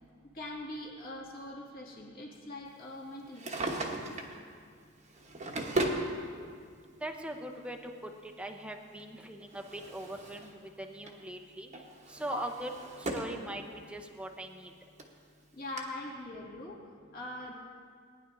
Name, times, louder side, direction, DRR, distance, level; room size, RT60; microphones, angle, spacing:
voice 1, 0.3-4.1 15.5-17.5, left 1 dB, 45° left, -4 dB, 2.2 m, -43 dB
Drawer open or close, 3.2-4.4 5.1-6.1 7.1-7.2 9.0-10.5 10.8-11.2 11.7-13.4 13.8-13.9 14.7-14.8 15.0-15.1 15.8-15.9, right 1 dB, 35° right, 1.1 m, -36 dB
voice 2, 7.0-10.5 10.8-11.7 12.1-12.7 13.0-13.6 13.9-14.7, right 1 dB, 5° right, 3 dB, 0.7 m, -41 dB
18.5 x 10.5 x 2.6 m, 2.1 s
head